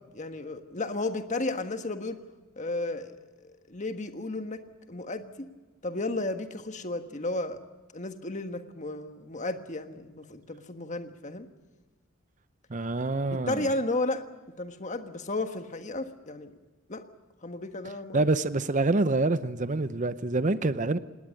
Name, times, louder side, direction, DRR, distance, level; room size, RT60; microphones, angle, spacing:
voice 1, 0.1-2.2 2.6-5.3 5.8-7.6 7.9-11.5 13.2-14.3 14.6-16.5 16.9-17.0 17.4-18.2, left 2 dB, 35° left, 1.5 m, -33 dB
voice 2, 12.7-13.7 18.1-21.0, right 2 dB, 35° right, 0.7 m, -26 dB
19.5 x 18.5 x 9.8 m
head